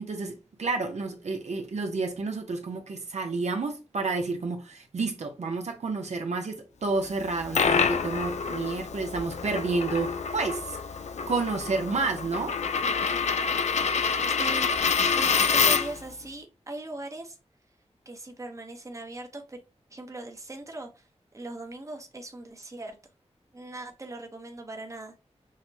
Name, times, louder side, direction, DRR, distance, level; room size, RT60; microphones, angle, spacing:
voice 1, 0.0-10.8 11.3-12.6, right 3 dB, 70° right, 0.7 m, -30 dB
Coin (dropping), 7.2-16.1, left 5 dB, 75° left, 0.4 m, -27 dB
voice 2, 14.3-17.4 18.1-19.6 19.9-21.1 21.3-23.0 23.5-25.2, right 2 dB, 25° right, 0.8 m, -40 dB
6.3 x 2.1 x 2.7 m
wide cardioid pair, 95°, 12 cm